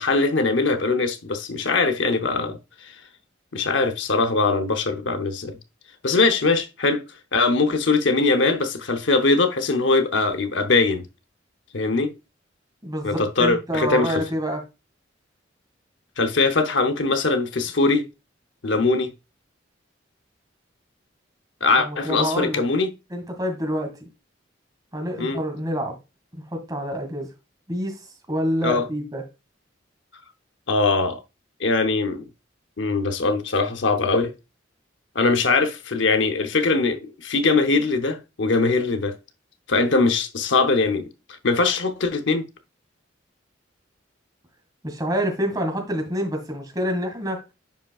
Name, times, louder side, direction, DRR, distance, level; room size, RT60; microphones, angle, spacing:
voice 1, 0.0-2.9 3.5-5.6 6.0-7.0 7.3-11.1 11.7-12.1 13.0-14.2 16.2-18.1 18.6-19.1 21.6-22.9 25.2-25.4 28.6-28.8 30.7-31.2 31.6-32.3 32.8-34.3 35.1-39.1 39.7-41.1 41.4-42.4, left 3 dB, 70° left, 0.8 m, -21 dB
voice 2, 12.8-14.6 21.8-22.6 23.1-24.1 24.9-26.0 26.5-27.3 27.7-28.0 28.3-29.2 44.8-47.4, equal, 20° right, 1.9 m, -27 dB
10.5 x 5.1 x 2.4 m
head